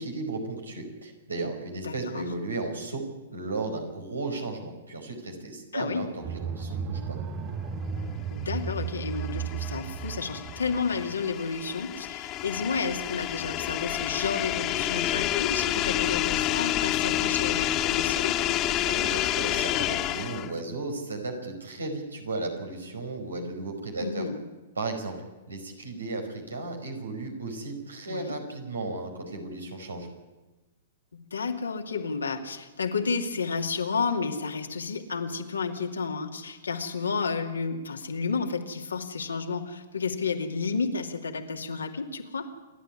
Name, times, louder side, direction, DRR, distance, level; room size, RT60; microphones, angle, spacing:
voice 1, 0.0-3.0 3.3-7.2 18.8-24.2 24.7-25.1 25.5-30.1, right 2 dB, 85° right, 3 dB, 4.9 m, -35 dB
voice 2, 1.8-2.3 5.7-6.0 8.3-18.4 24.0-24.4 28.1-28.4 31.1-42.5, left 5 dB, 80° left, 4 dB, 2.5 m, -31 dB
sound 1, 6.2-11.2, right 6 dB, 35° right, 1.2 m, -34 dB
sound 2, 8.7-20.6, left 14 dB, 35° left, 0.9 m, -29 dB
28.0 x 11.5 x 9.9 m, 1.2 s
figure-of-eight pair, 110°, 0 cm